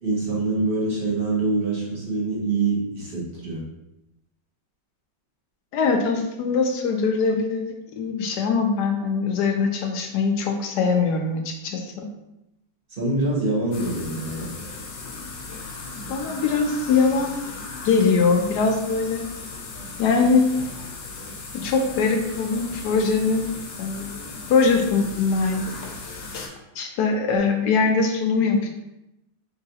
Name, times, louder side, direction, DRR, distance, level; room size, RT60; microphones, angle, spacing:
voice 1, 0.0-3.6 12.9-14.5, right 3 dB, 35° right, -6 dB, 1.1 m, -25 dB
voice 2, 5.7-12.1 16.1-17.4 17.8-19.2 20.0-20.5 21.5-23.5 23.8-24.1 24.5-25.8 26.8-28.7, left 4 dB, 70° left, 3 dB, 1.1 m, -22 dB
sound 1, 13.7-26.5, left 3 dB, 85° left, 1.5 m, -37 dB
4.0 x 3.8 x 2.8 m, 0.90 s
omnidirectional pair, 2.0 m